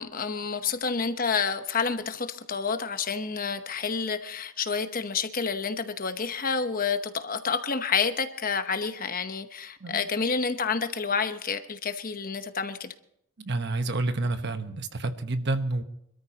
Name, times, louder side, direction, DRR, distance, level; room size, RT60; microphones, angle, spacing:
voice 1, 0.0-12.9, left 5 dB, 45° left, 9 dB, 1.0 m, -29 dB
voice 2, 13.4-15.8, right 2 dB, 55° right, 9 dB, 1.1 m, -29 dB
25.5 x 13.5 x 2.9 m, 0.74 s
head